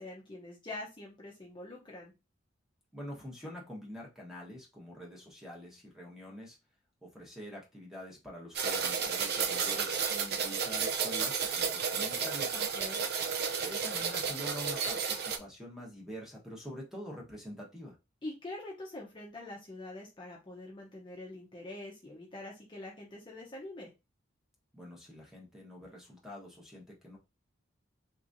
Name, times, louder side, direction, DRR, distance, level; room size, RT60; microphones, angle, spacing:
voice 1, 0.0-2.1 12.5-13.1 18.2-23.9, left 2 dB, 25° left, -2 dB, 0.7 m, -44 dB
voice 2, 2.9-6.6 7.0-12.5 13.6-18.0 24.7-27.2, equal, ahead, -3 dB, 1.2 m, -45 dB
sound 1, 8.5-15.4, right 6 dB, 55° right, 0.5 m, -32 dB
3.6 x 3.0 x 2.6 m, 0.26 s
head